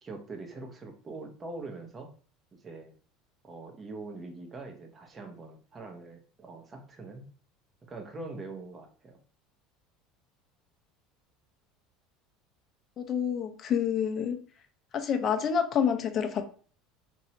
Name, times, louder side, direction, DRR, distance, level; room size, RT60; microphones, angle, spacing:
voice 1, 0.0-2.1 2.6-2.9 3.4-7.3 7.9-9.2, right 3 dB, 25° right, 4 dB, 0.8 m, -43 dB
voice 2, 13.0-14.4 14.9-16.5, left 7 dB, 40° left, 7 dB, 0.6 m, -28 dB
3.1 x 2.6 x 2.8 m, 0.42 s
supercardioid pair, 115°, 0 cm